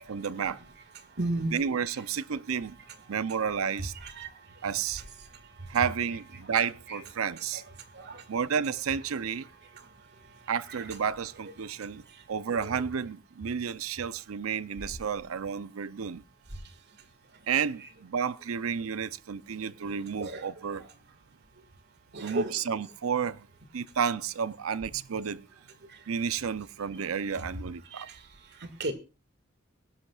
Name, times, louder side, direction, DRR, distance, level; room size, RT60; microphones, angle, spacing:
voice 1, 0.1-0.6 1.5-2.8 3.1-3.9 4.6-5.0 5.7-7.6 8.3-9.5 10.5-12.0 12.3-16.2 17.5-20.8 22.2-23.5 23.7-25.4 26.1-28.1, right 7 dB, 85° right, 0.6 m, -31 dB
voice 2, 1.2-1.5 4.0-4.3 6.9-7.0 7.9-8.2 20.2-20.4 22.1-22.5 27.9-28.1 28.6-28.9, right 2 dB, 55° right, 1.9 m, -33 dB
22.5 x 12.0 x 2.4 m
head